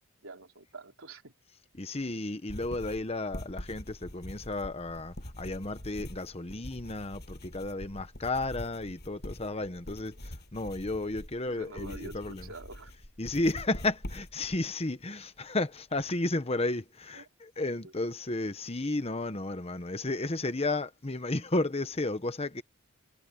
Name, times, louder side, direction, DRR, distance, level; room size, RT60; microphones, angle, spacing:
voice 1, 0.2-1.3 11.5-12.9 17.1-17.3 17.8-17.9, right 2 dB, 70° right, 3.6 m, -46 dB
voice 2, 1.8-12.4 13.2-22.6, left 2 dB, 30° left, 1.1 m, -33 dB
sound 1, 2.5-14.6, equal, 50° left, 7.0 m, -44 dB
head